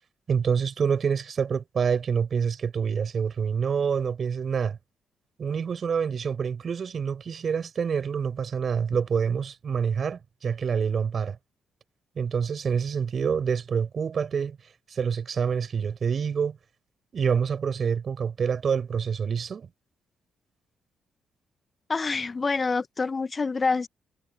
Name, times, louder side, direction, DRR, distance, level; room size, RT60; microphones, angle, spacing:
voice 1, 0.3-4.8 5.4-11.4 12.1-14.6 14.9-16.6 17.1-19.7, right 6 dB, 50° right, 6.9 m, -27 dB
voice 2, 21.9-23.9, left 4 dB, 35° left, 1.4 m, -26 dB
hypercardioid pair, 45°, 0 cm